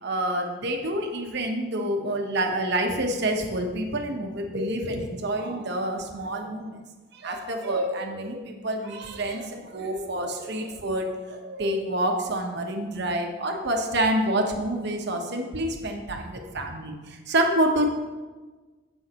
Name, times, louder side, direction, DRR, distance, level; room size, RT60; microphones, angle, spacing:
voice 1, 0.0-6.8 7.1-17.9, right 1 dB, 55° right, 3 dB, 1.1 m, -27 dB
15.5 x 5.6 x 3.0 m, 1.3 s
head